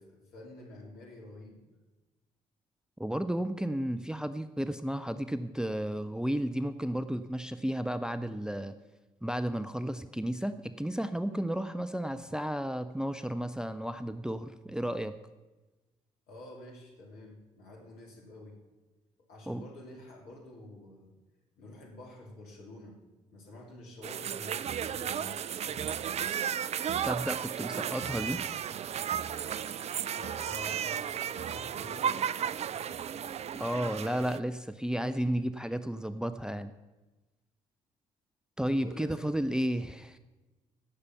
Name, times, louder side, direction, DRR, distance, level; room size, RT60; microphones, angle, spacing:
voice 1, 0.0-1.6 16.3-18.6 19.2-21.1 21.6-23.0 23.3-26.5 30.1-32.3 32.7-33.0 38.7-39.5, left 1 dB, 65° left, -1 dB, 2.7 m, -49 dB
voice 2, 3.0-8.7 9.2-15.2 19.5-19.6 27.0-28.4 33.6-36.7 38.6-40.2, equal, 5° right, 10 dB, 0.6 m, -33 dB
sound 1, 24.0-34.4, right 9 dB, 40° right, 0.4 m, -34 dB
16.5 x 6.8 x 5.7 m, 1.1 s
figure-of-eight pair, 40°, 17 cm